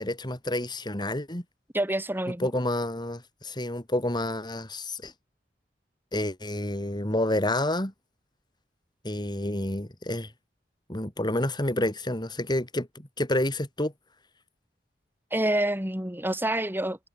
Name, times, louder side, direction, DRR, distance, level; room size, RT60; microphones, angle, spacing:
voice 1, 0.0-1.4 2.4-5.1 6.1-7.9 9.0-10.3 10.9-13.9, left 1 dB, 25° left, 4.4 m, -29 dB
voice 2, 1.7-2.5 15.3-17.0, right 1 dB, 10° right, 5.6 m, -27 dB
head